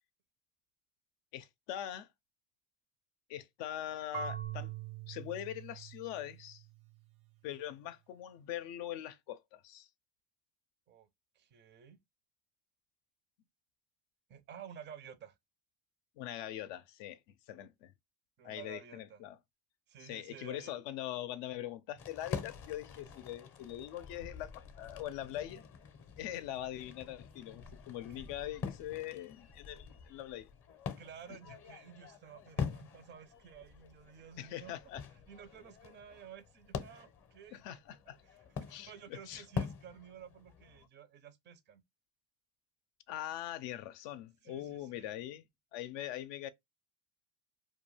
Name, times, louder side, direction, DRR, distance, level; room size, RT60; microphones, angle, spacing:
voice 1, 1.3-2.1 3.3-4.7 5.1-6.6 7.4-9.9 16.2-17.9 18.4-19.4 20.0-25.7 26.2-30.5 34.4-35.0 37.5-38.2 38.7-39.4 43.1-45.5 45.7-46.5, left 12 dB, 70° left, 0.5 m, -42 dB
Marimba xylophone / Wood, 4.1-7.0, right 9 dB, 90° right, 0.9 m, -43 dB
voice 2, 11.3-12.0 14.3-15.4 18.4-19.2 19.9-20.7 28.1-28.3 31.0-34.7 35.3-37.6 38.2-41.8 44.4-45.1, right 8 dB, 25° right, 0.4 m, -53 dB
sound 1, 22.0-40.9, left 6 dB, 30° left, 0.6 m, -45 dB
2.3 x 2.2 x 3.0 m
supercardioid pair, 105°, 46 cm